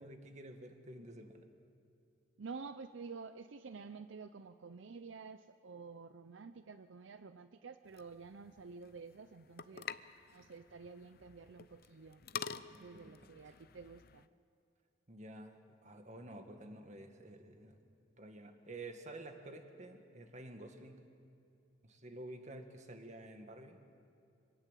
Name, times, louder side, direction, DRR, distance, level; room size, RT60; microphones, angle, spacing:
voice 1, 0.0-1.5 12.7-13.2 13.4-13.6 15.1-17.8 18.2-21.0 21.8-23.8, right 1 dB, 40° right, 5 dB, 1.9 m, -50 dB
voice 2, 2.4-9.9 10.3-14.3, right 4 dB, 75° right, 11 dB, 0.6 m, -50 dB
sound 1, 7.9-14.3, left 7 dB, 55° left, 0.6 m, -49 dB
24.5 x 18.5 x 8.3 m, 2.5 s
head